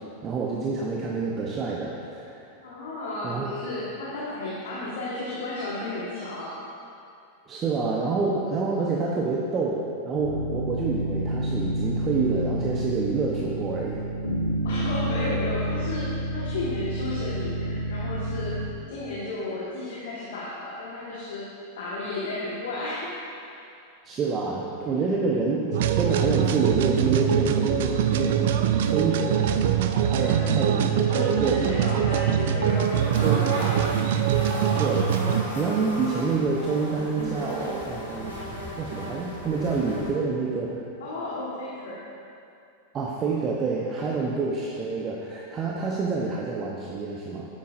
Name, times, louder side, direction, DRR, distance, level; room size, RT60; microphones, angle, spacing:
voice 1, 0.2-2.5 3.2-3.5 7.5-14.0 24.0-28.6 28.9-29.5 29.9-30.9 31.2-32.2 33.2-33.5 34.7-38.3 38.8-40.9 42.9-47.5, right 4 dB, 25° right, -2 dB, 0.9 m, -28 dB
voice 2, 2.6-6.5 14.6-18.6 18.9-21.4 21.7-23.4 25.4-25.5 30.1-30.6 30.8-33.8 39.9-40.1 41.0-42.0, left 2 dB, 60° left, -7 dB, 1.6 m, -33 dB
sound 1, 10.1-18.7, right 1 dB, 85° right, 1.7 m, -29 dB
sound 2, 25.7-35.4, right 9 dB, 55° right, 0.5 m, -23 dB
sound 3, 32.7-40.1, equal, 85° left, 2.4 m, -36 dB
12.5 x 9.4 x 2.6 m, 2.6 s
figure-of-eight pair, 90°, 0 cm